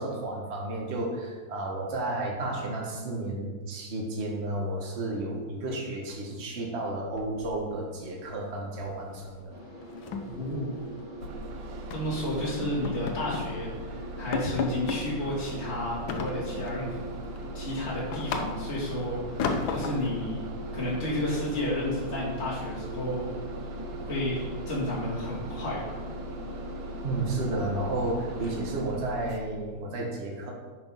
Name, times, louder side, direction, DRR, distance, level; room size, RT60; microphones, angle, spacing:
voice 1, 0.0-9.6 27.0-30.5, right 2 dB, 35° right, -1 dB, 1.6 m, -32 dB
sound 1, 7.1-8.0 8.2-8.5 8.8-9.0 9.3-9.4 9.8-11.4 11.9-12.2 12.6-13.6 13.9-14.0 14.3-15.1 16.1-16.8 17.2-18.9 19.4-20.2, left 5 dB, 80° left, 1.6 m, -34 dB
sound 2, 9.5-28.7, equal, 15° right, 2.0 m, -41 dB
voice 2, 10.2-10.7 11.9-17.0 17.5-20.4 20.7-23.3 24.0-26.0, left 1 dB, 35° left, -8 dB, 3.1 m, -32 dB
Bus, 11.2-29.4, right 1 dB, 80° right, 1.4 m, -40 dB
8.8 x 5.4 x 5.6 m, 1.3 s
omnidirectional pair, 2.1 m